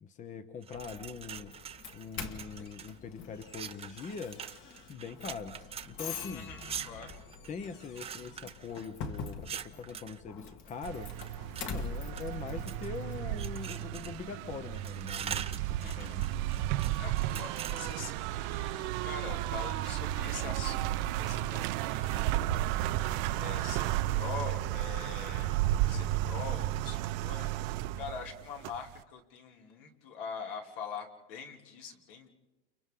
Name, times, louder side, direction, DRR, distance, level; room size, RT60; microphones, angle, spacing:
voice 1, 0.0-1.5 1.9-4.4 4.9-5.6 5.9-6.5 7.5-11.1 11.7-16.3, left 5 dB, 25° left, 10 dB, 0.9 m, -42 dB
sound 1, 0.6-2.9 3.4-10.2 10.8-11.7 12.1-13.0 13.4-14.3 14.6-18.1, right 8 dB, 20° right, 0.7 m, -44 dB
Doorbell, 0.7-13.9, left 4 dB, 40° left, 1.9 m, -45 dB
voice 2, 6.3-7.1 15.8-16.2 16.9-22.3 23.0-25.6 25.9-32.3, left 6 dB, 70° left, 2 dB, 3.1 m, -44 dB
sound 2, 10.8-29.0, right 14 dB, 60° right, 0.8 m, -33 dB
29.5 x 29.5 x 3.9 m, 1.0 s
supercardioid pair, 140°, 30 cm